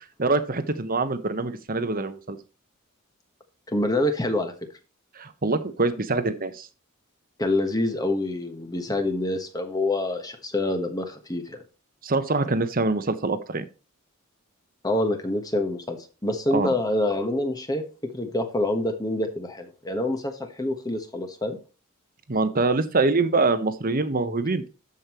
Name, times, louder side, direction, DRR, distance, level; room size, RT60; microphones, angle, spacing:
voice 1, 0.2-2.4 5.2-6.7 12.0-13.7 16.5-16.7 22.3-24.7, right 3 dB, 45° right, 11 dB, 1.1 m, -24 dB
voice 2, 3.7-4.5 7.4-11.6 14.8-21.6, left 1 dB, 20° left, 5 dB, 1.3 m, -26 dB
13.5 x 5.4 x 3.1 m, 0.34 s
head